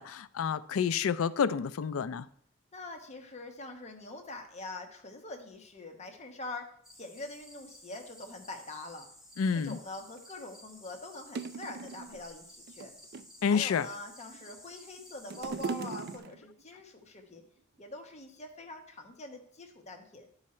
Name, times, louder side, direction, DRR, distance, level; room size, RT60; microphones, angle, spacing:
voice 1, 0.0-2.3 9.4-9.8 13.4-13.9, left 6 dB, 85° left, 0.4 m, -29 dB
voice 2, 2.7-6.7 6.9-9.1 9.5-12.9 13.5-17.4 17.8-20.3, left 2 dB, 35° left, 1.0 m, -44 dB
sound 1, 6.8-16.2, equal, ahead, 1.3 m, -54 dB
sound 2, 10.1-10.2 10.9-11.0 11.3-12.2 12.7-13.4 14.1-14.7 15.0-16.6 17.4-17.5, right 4 dB, 50° right, 0.4 m, -39 dB
11.0 x 4.9 x 4.3 m
head